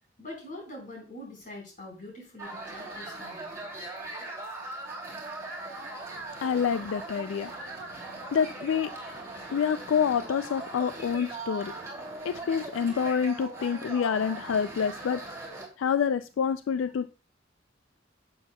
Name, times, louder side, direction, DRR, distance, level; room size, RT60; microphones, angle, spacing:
voice 1, 0.2-3.7, left 1 dB, 45° left, 4.3 m, -44 dB
sound 1, 2.4-15.7, right 2 dB, 15° right, 2.9 m, -40 dB
voice 2, 6.4-7.5 8.3-8.9 9.5-11.7 12.2-15.2 15.8-17.1, left 7 dB, 80° left, 0.3 m, -27 dB
11.0 x 7.8 x 2.2 m
head